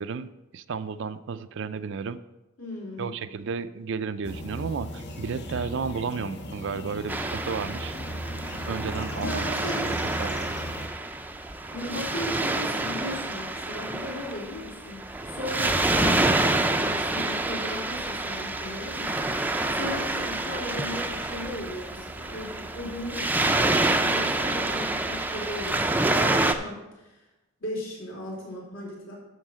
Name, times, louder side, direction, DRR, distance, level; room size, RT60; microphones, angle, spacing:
voice 1, 0.0-2.2 3.0-8.0 8.7-9.6 10.2-10.5, right 5 dB, 60° right, 13 dB, 0.4 m, -33 dB
voice 2, 2.6-3.1 9.2-10.0 11.7-27.1 27.6-29.1, left 1 dB, 70° left, -4 dB, 3.6 m, -36 dB
sound 1, 4.2-10.9, equal, 55° left, 1.2 m, -37 dB
Waves surf, 7.1-26.5, right 2 dB, 10° right, 0.5 m, -27 dB
12.0 x 4.5 x 6.2 m, 1.0 s
head